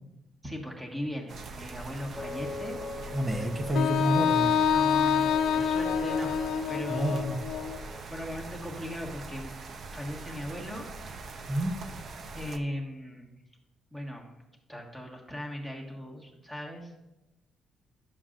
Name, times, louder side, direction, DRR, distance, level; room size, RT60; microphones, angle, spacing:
voice 1, 0.4-2.8 4.7-7.3 7.6-9.5 9.9-11.1 12.3-13.3 13.9-14.3 14.7-16.9, equal, 10° right, 0 dB, 1.6 m, -38 dB
sound 1, 1.3-12.6, right 3 dB, 55° right, 0.7 m, -43 dB
sound 2, 2.2-8.0, left 3 dB, 25° left, 0.5 m, -41 dB
voice 2, 3.1-4.5 6.9-7.4 11.5-11.7, right 1 dB, 25° right, 5 dB, 0.9 m, -28 dB
Wind instrument woodwind instrument, 3.7-7.8, left 7 dB, 80° left, 0.4 m, -26 dB
11.0 x 6.9 x 2.5 m, 0.92 s
cardioid pair, 90°, 0 cm